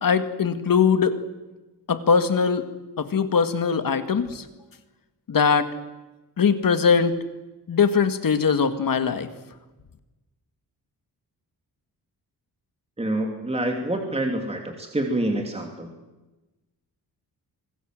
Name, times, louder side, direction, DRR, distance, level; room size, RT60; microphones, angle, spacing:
voice 1, 0.0-1.2 1.9-2.7 3.0-4.5 5.3-5.7 6.4-7.1 7.7-9.3, left 6 dB, 55° left, 9 dB, 1.9 m, -21 dB
voice 2, 13.0-15.9, right 1 dB, 15° right, 2 dB, 2.8 m, -27 dB
26.5 x 19.5 x 7.7 m, 1.1 s
wide cardioid pair, 125°, 40 cm